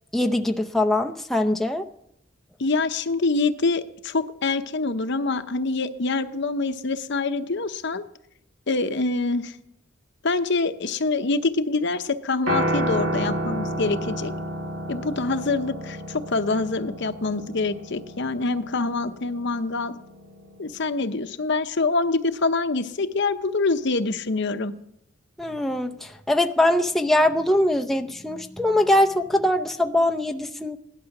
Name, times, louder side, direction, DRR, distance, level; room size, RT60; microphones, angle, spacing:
voice 1, 0.1-1.8 25.4-30.8, left 1 dB, ahead, 3 dB, 0.6 m, -22 dB
voice 2, 2.6-8.0 8.7-9.6 10.2-14.3 14.9-20.0 20.6-24.7, left 3 dB, 60° left, 9 dB, 0.8 m, -25 dB
Piano, 12.5-20.7, right 1 dB, 80° right, 2.0 m, -31 dB
17.0 x 11.5 x 6.0 m, 0.79 s
head